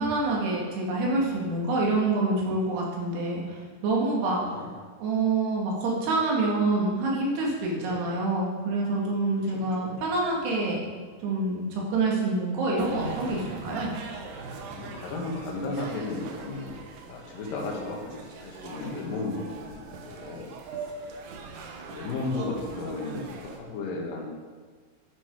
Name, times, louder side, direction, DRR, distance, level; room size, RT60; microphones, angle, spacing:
voice 1, 0.0-4.4 5.0-10.8 11.2-13.9, right 2 dB, 60° right, -3 dB, 4.0 m, -26 dB
voice 2, 4.4-4.7 7.7-8.0 9.5-10.0 14.8-20.5 21.9-24.3, left 2 dB, 55° left, -1 dB, 2.9 m, -34 dB
sound 1, 12.8-23.6, right 4 dB, 80° right, 2.0 m, -42 dB
11.0 x 9.8 x 4.8 m, 1.5 s
omnidirectional pair, 5.8 m